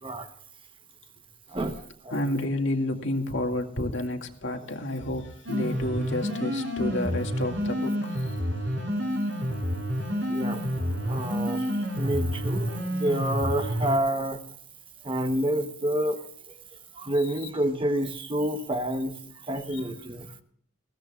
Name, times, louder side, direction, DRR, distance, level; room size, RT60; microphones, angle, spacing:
voice 1, 1.5-2.4 10.3-10.7 11.1-14.4 15.0-16.5 16.9-20.3, right 1 dB, 25° right, 7 dB, 1.1 m, -29 dB
voice 2, 2.1-8.4 19.7-19.8, left 1 dB, 65° left, 3 dB, 2.2 m, -30 dB
sound 1, 5.5-14.0, equal, 70° right, 4.9 m, -29 dB
21.0 x 16.5 x 2.4 m, 0.65 s
head